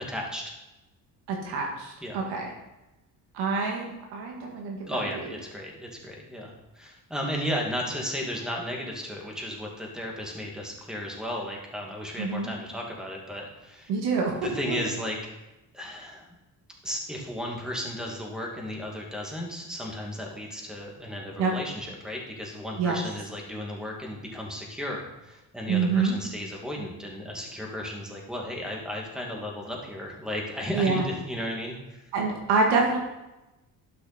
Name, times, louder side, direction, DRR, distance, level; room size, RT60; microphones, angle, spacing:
voice 1, 0.1-0.5 2.0-2.2 4.8-13.9 14.4-15.2 15.7-16.3 16.8-32.0, equal, ahead, -1 dB, 2.3 m, -34 dB
voice 2, 1.3-2.5 3.3-5.0 12.2-12.5 13.9-14.4 14.7-14.8 21.4-21.5 22.8-23.0 25.7-26.2 30.7-31.1 32.1-33.0, right 4 dB, 90° right, -1 dB, 1.9 m, -26 dB
12.0 x 6.0 x 4.2 m, 0.97 s
cardioid pair, 110°, 38 cm